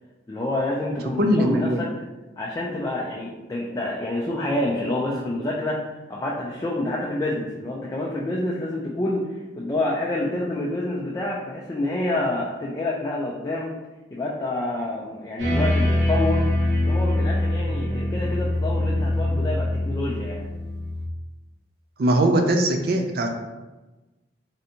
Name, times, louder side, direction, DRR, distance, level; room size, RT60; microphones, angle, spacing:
voice 1, 0.3-1.9 2.4-13.7 14.1-16.5 16.8-20.5, left 1 dB, 20° left, -4 dB, 0.3 m, -28 dB
voice 2, 1.2-1.9 22.0-23.3, right 1 dB, 55° right, 4 dB, 0.4 m, -20 dB
sound 1, 15.4-21.0, left 1 dB, 85° right, 1.1 m, -23 dB
3.3 x 2.7 x 2.8 m, 1.1 s
head